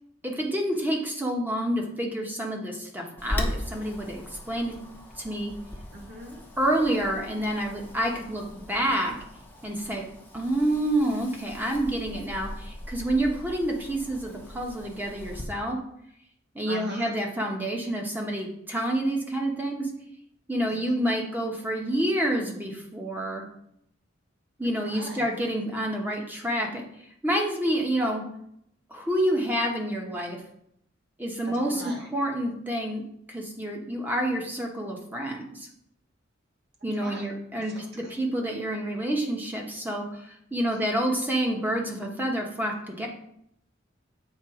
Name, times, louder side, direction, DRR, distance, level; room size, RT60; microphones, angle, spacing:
voice 1, 0.2-4.2 4.5-4.8 5.2-5.5 6.6-9.1 9.6-10.0 10.3-15.8 16.5-19.9 20.5-23.5 24.6-26.8 27.2-28.2 28.9-30.4 31.2-33.0 33.3-35.7 36.8-43.1, right 1 dB, 10° right, 0 dB, 1.1 m, -28 dB
Wind, 3.2-15.4, left 1 dB, 10° left, 0.9 m, -39 dB
voice 2, 5.9-6.4 16.6-17.1 20.7-21.0 24.8-25.3 31.4-32.1 37.0-37.3 37.5-38.1 40.7-40.8, right 1 dB, 55° right, -1 dB, 1.6 m, -41 dB
7.5 x 3.6 x 4.9 m, 0.73 s
head